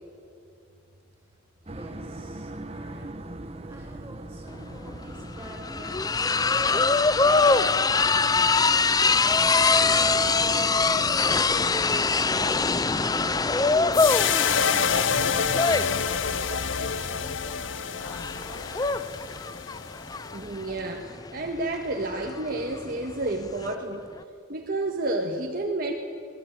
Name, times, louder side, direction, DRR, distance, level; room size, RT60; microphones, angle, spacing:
voice 1, 1.1-3.2 3.7-9.0 9.3-12.8 13.5-14.5 15.8-19.5, equal, 15° right, 0 dB, 7.4 m, -48 dB
sound 1, 1.7-15.6, right 1 dB, 30° right, 1.0 m, -39 dB
sound 2, 4.5-4.6 4.9-23.7, left 4 dB, 20° left, 0.5 m, -24 dB
sound 3, 13.9-20.3, left 7 dB, 70° left, 0.9 m, -27 dB
voice 2, 20.3-24.1 24.5-25.9, right 2 dB, 45° right, 1 dB, 1.8 m, -30 dB
25.0 x 20.0 x 9.2 m, 2.6 s
head